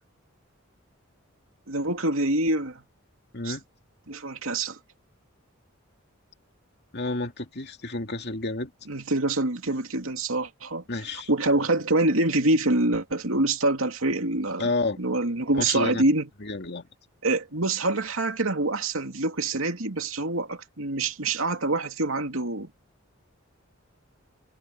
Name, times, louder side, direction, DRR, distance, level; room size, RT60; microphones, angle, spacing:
voice 1, 1.7-2.8 3.4-3.6 4.1-4.8 8.9-10.8 11.3-14.7 15.0-16.3 17.2-22.7, right 2 dB, 80° right, 2.6 m, -25 dB
voice 2, 6.9-8.7 10.9-11.3 14.6-15.0 15.6-16.0 16.4-16.9, left 2 dB, 55° left, 2.6 m, -30 dB
head